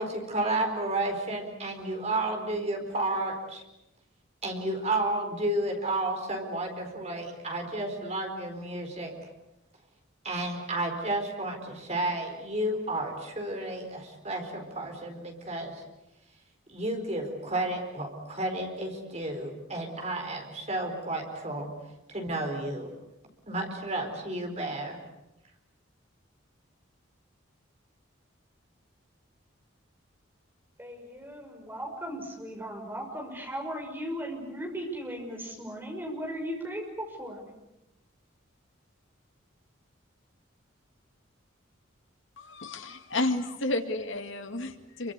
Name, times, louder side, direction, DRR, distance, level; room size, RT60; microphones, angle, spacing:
voice 1, 0.0-3.6 4.4-9.1 10.2-15.8 16.7-21.7 22.1-22.9 23.5-25.0, right 2 dB, 30° right, 3 dB, 4.4 m, -32 dB
voice 2, 30.8-37.4, equal, 10° right, 1 dB, 6.1 m, -37 dB
voice 3, 42.4-45.1, left 2 dB, 70° left, 7 dB, 2.1 m, -31 dB
27.5 x 24.5 x 8.2 m, 0.91 s
head